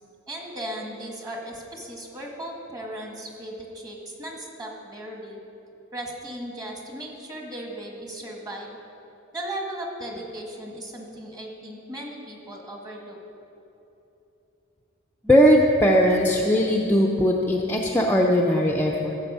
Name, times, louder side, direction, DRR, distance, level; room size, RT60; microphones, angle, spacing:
voice 1, 0.3-5.4 5.9-8.8 9.3-13.2, right 1 dB, 20° right, 0 dB, 1.6 m, -36 dB
voice 2, 15.2-19.1, equal, 10° left, -1 dB, 0.6 m, -19 dB
13.5 x 6.8 x 5.5 m, 3.0 s
head